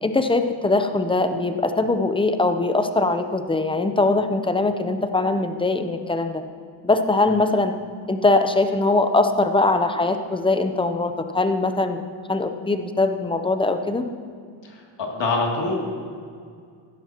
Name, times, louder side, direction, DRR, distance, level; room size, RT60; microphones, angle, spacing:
voice 1, 0.0-6.4 6.8-7.7 8.1-12.0 12.3-14.1, left 2 dB, 10° left, 7 dB, 0.8 m, -21 dB
voice 2, 15.0-15.7, left 3 dB, 55° left, -1 dB, 3.0 m, -23 dB
16.0 x 11.5 x 3.1 m, 2.2 s
cardioid pair, 85°, 49 cm